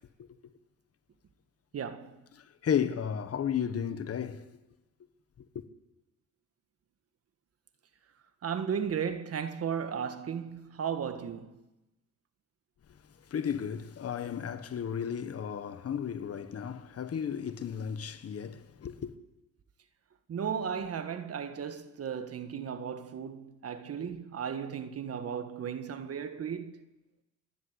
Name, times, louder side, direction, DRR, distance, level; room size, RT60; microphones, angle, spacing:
voice 1, 1.7-2.2 8.4-11.6 20.3-26.7, right 7 dB, 50° right, 1.6 m, -35 dB
voice 2, 2.3-4.5 5.5-5.6 13.3-19.1, left 8 dB, 50° left, 1.5 m, -33 dB
28.0 x 11.5 x 8.2 m
cardioid pair, 90°, 30 cm